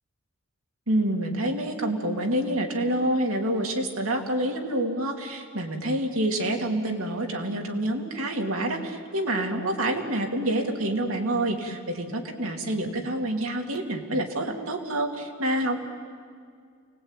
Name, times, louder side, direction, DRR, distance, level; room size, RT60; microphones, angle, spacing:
voice 1, 0.9-15.8, right 1 dB, 90° right, 2 dB, 2.9 m, -27 dB
28.5 x 20.0 x 9.1 m, 2.1 s
head